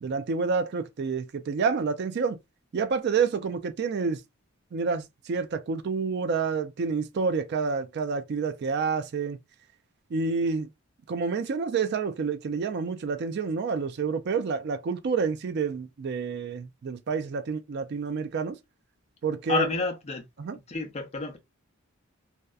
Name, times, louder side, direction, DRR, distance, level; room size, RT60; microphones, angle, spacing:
voice 1, 0.0-2.4 2.7-4.2 4.7-9.4 10.1-10.7 11.1-18.6 19.2-19.7 20.4-20.6, right 5 dB, 50° right, 0.3 m, -28 dB
voice 2, 19.5-20.2 20.5-21.4, left 3 dB, 30° left, 0.6 m, -29 dB
2.7 x 2.1 x 2.3 m
head